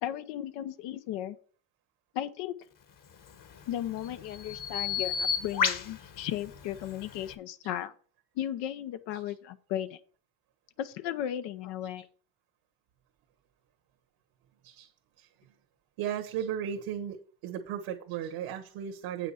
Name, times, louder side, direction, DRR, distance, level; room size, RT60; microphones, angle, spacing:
voice 1, 0.0-1.4 2.1-2.5 3.7-7.9 8.4-10.0 10.8-12.1, left 11 dB, 85° left, 10 dB, 0.8 m, -35 dB
Bird vocalization bird call bird song, 3.1-7.4, left 7 dB, 50° left, 1.4 m, -34 dB
voice 2, 16.0-17.2 17.4-19.3, right 9 dB, 80° right, 2 dB, 1.4 m, -35 dB
8.1 x 5.9 x 5.6 m, 0.43 s
cardioid pair, 90°, 42 cm